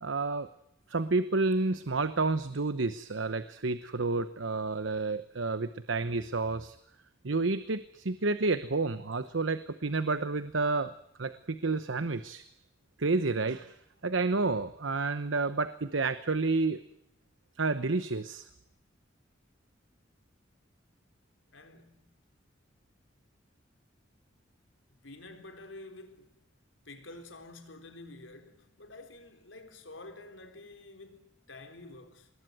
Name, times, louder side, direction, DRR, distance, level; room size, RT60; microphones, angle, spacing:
voice 1, 0.0-0.5 0.9-6.7 7.2-10.9 11.2-12.4 13.0-13.7 14.0-16.8 17.6-18.5, right 3 dB, 85° right, 1.0 m, -30 dB
voice 2, 21.5-22.2 25.0-26.3 26.8-32.3, left 2 dB, 85° left, 3.9 m, -49 dB
26.0 x 20.5 x 9.3 m
head